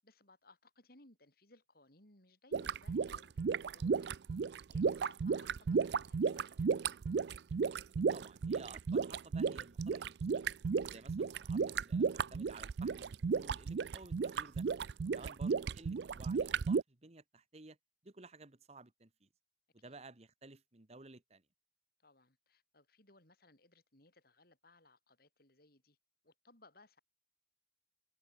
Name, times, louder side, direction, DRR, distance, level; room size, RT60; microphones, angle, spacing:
voice 1, 0.0-4.2 4.7-7.0 15.1-15.3 19.8-20.0 22.0-26.0 26.2-27.0, left 2 dB, 55° left, 6.8 m, -65 dB
sound 1, 2.5-16.8, right 5 dB, 65° right, 0.4 m, -34 dB
voice 2, 8.1-10.5 10.9-14.7 15.1-17.8 18.0-19.3 19.7-21.4, right 3 dB, 35° right, 1.4 m, -55 dB
head